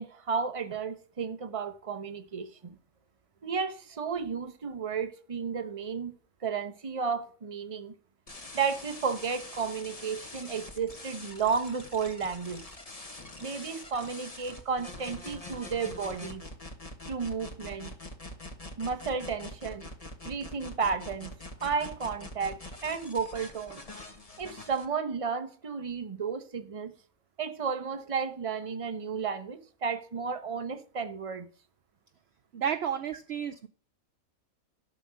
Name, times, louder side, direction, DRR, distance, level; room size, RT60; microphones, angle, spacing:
voice 1, 0.0-2.8 3.4-7.9 8.5-12.6 13.4-16.4 17.1-17.9 18.8-19.9 20.2-21.3 21.6-23.8 24.4-26.9 27.4-31.5, right 5 dB, 30° right, 0.9 m, -33 dB
sound 1, 8.3-24.9, left 2 dB, 25° left, 1.4 m, -44 dB
voice 2, 32.5-33.7, right 8 dB, 60° right, 0.8 m, -31 dB
12.0 x 5.3 x 6.2 m
omnidirectional pair, 1.5 m